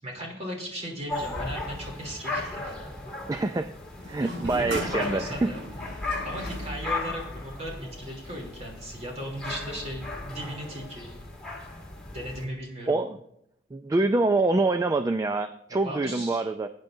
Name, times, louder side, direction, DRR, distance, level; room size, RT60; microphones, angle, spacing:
voice 1, 0.0-2.8 4.2-5.6 6.2-11.1 12.1-13.0 15.7-16.4, equal, 40° right, -1 dB, 3.2 m, -37 dB
sound 1, 1.1-12.4, left 2 dB, 5° left, 2.3 m, -36 dB
sound 2, 1.3-2.6 4.0-7.5, equal, 85° right, 4.9 m, -39 dB
voice 2, 3.3-3.7 4.1-5.5 12.9-13.2 13.7-16.7, right 2 dB, 20° right, 8 dB, 0.3 m, -25 dB
18.0 x 9.0 x 2.7 m, 0.75 s
head